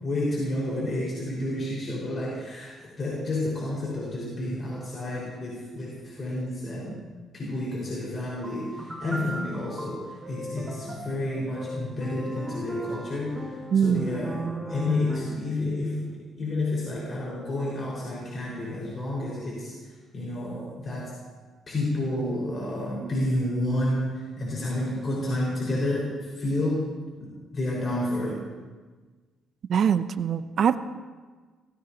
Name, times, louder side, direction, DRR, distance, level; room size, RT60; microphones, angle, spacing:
voice 1, 0.0-7.0 7.3-14.4 14.7-19.7 20.1-21.1 21.7-26.9 27.2-28.4, left 1 dB, 45° left, -5 dB, 5.5 m, -30 dB
sound 1, 8.4-15.5, right 1 dB, 15° right, 4.5 m, -37 dB
voice 2, 13.7-14.1 29.7-30.8, right 7 dB, 60° right, 12 dB, 0.7 m, -23 dB
24.5 x 17.5 x 3.0 m, 1.4 s
supercardioid pair, 70°, 0 cm